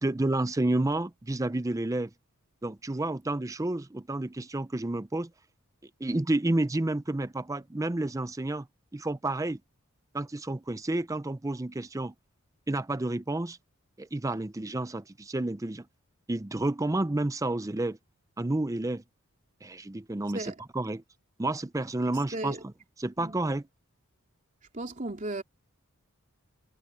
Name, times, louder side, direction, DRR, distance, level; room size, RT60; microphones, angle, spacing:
voice 1, 0.0-2.1 2.6-5.3 6.0-8.7 8.9-9.6 10.1-12.1 12.7-13.6 14.0-15.8 16.3-18.0 18.4-19.0 19.6-20.5 20.7-21.0 21.4-22.5 23.0-23.6, right 2 dB, 15° right, 0.5 m, -30 dB
voice 2, 22.1-22.6 23.2-23.4 24.7-25.4, right 2 dB, 35° right, 3.4 m, -36 dB
head